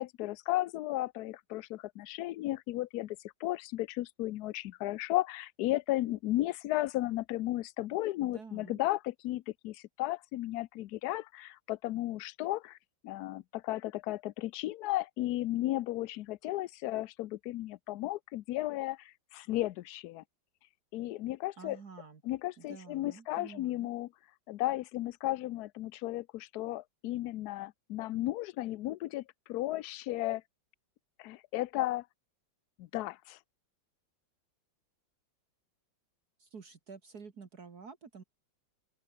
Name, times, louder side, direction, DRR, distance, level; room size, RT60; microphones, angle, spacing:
voice 1, 0.0-12.8 13.0-20.2 20.9-21.8 22.2-24.1 24.5-29.2 29.5-30.4 31.2-32.1 32.8-33.4, left 16 dB, 70° left, 1.0 m, -34 dB
voice 2, 8.2-8.8 21.6-22.2 22.6-23.9 36.4-38.2, right 5 dB, 55° right, 2.4 m, -49 dB
open air
omnidirectional pair, 2.1 m